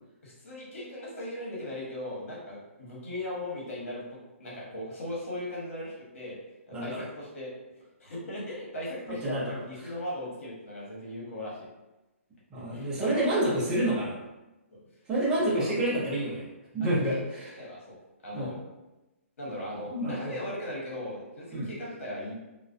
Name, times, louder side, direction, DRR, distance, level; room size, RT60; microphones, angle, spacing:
voice 1, 0.2-4.0 4.4-6.4 6.7-7.5 8.0-11.7 12.7-13.5 14.7-14.8 15.4-15.7 16.8-17.2 17.6-18.0 18.2-18.6 19.4-22.3, left 1 dB, 70° left, -5 dB, 1.1 m, -38 dB
voice 2, 6.7-7.0 9.1-9.6 12.5-14.2 15.1-16.4 16.7-17.5 18.3-18.6 19.9-20.4 21.5-21.7, right 1 dB, 10° right, -8 dB, 0.4 m, -28 dB
2.3 x 2.1 x 2.4 m, 1.0 s
hypercardioid pair, 165°, 8 cm